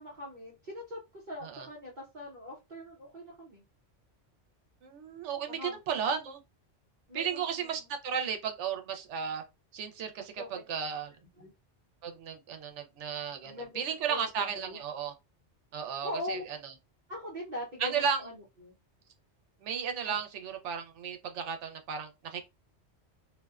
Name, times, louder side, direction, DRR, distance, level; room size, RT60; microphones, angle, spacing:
voice 1, 0.0-3.6 5.5-5.8 7.1-7.8 10.3-10.5 11.4-11.5 13.4-13.8 14.1-14.8 16.0-16.4 17.1-18.4 18.6-18.7 20.1-20.2, left 1 dB, 45° right, 0.9 m, -41 dB
voice 2, 4.8-6.4 7.1-9.4 9.7-11.1 12.0-15.1 15.7-16.7 17.8-18.2 19.6-22.4, right 7 dB, 90° right, 0.9 m, -34 dB
2.4 x 2.2 x 2.3 m
omnidirectional pair, 1.2 m